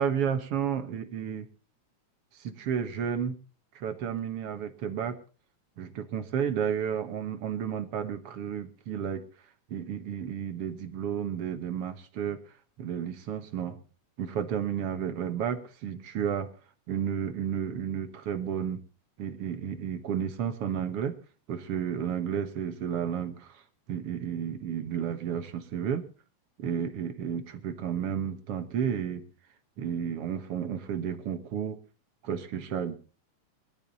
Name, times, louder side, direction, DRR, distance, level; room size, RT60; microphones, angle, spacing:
voice 1, 0.0-1.5 2.3-3.4 3.8-5.2 5.8-9.2 9.7-12.4 12.8-13.8 14.2-16.5 16.9-18.8 19.2-21.2 21.5-23.6 23.9-26.0 26.6-29.2 29.8-31.8 32.2-33.0, right 8 dB, 60° right, 10 dB, 2.0 m, -32 dB
21.0 x 12.0 x 4.1 m, 0.37 s
omnidirectional pair, 3.3 m